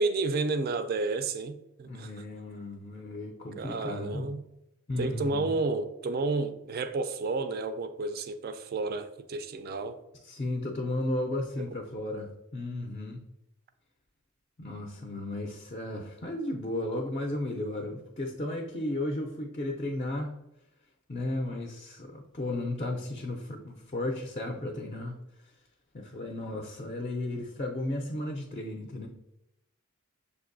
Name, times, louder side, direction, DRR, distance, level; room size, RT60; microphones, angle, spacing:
voice 1, 0.0-2.1 3.6-4.4 5.0-10.0, right 3 dB, 45° right, 0.3 m, -31 dB
voice 2, 1.8-4.3 4.9-5.6 10.2-13.2 14.6-20.3 21.1-25.2 25.9-29.1, left 1 dB, 30° left, 0.4 m, -34 dB
6.7 x 2.6 x 2.5 m
head